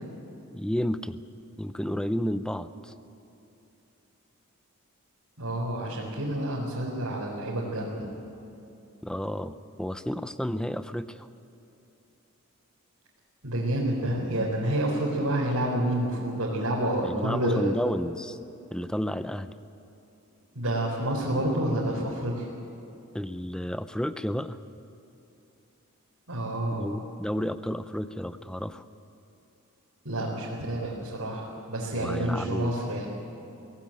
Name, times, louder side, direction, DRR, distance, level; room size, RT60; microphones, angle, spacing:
voice 1, 0.5-1.2 1.6-2.9 9.0-11.3 17.0-18.4 18.7-19.5 23.1-24.6 26.8-28.8 31.9-32.7, equal, 5° left, 12 dB, 0.5 m, -31 dB
voice 2, 5.4-8.1 13.4-17.7 20.5-22.5 26.3-26.9 30.0-33.1, right 1 dB, 90° right, -5 dB, 4.2 m, -29 dB
23.5 x 17.0 x 8.9 m, 2.9 s
head